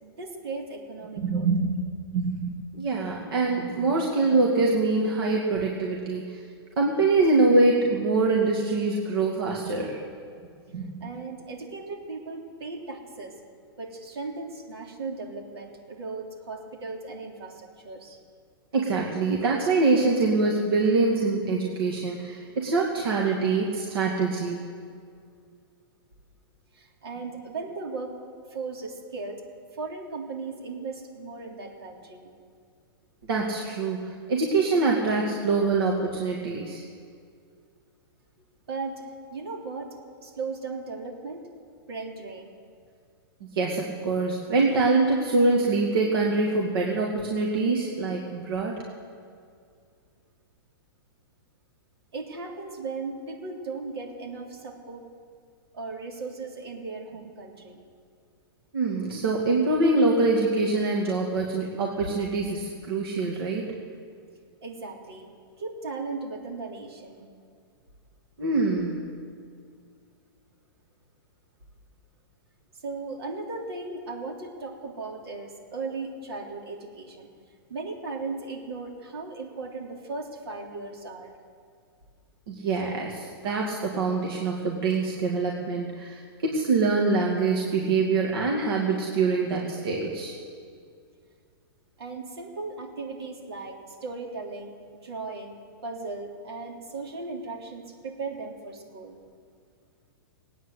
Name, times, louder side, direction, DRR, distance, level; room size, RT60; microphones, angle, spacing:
voice 1, 0.0-1.5 11.0-13.4 13.8-18.2 26.7-28.1 28.5-29.4 29.7-32.3 38.7-41.4 41.9-42.5 52.1-55.0 55.7-57.8 64.6-65.3 65.6-67.3 72.8-77.3 77.7-81.3 92.0-94.7 95.0-95.6 95.8-99.2, right 3 dB, 85° right, -1 dB, 3.4 m, -37 dB
voice 2, 1.2-6.4 6.8-10.0 10.7-10.9 18.7-24.7 33.3-36.8 43.5-48.7 58.7-63.7 68.4-69.1 82.5-90.4, right 3 dB, 70° right, -2 dB, 2.2 m, -24 dB
18.5 x 9.3 x 8.1 m, 2.2 s
hypercardioid pair, 160°, 13 cm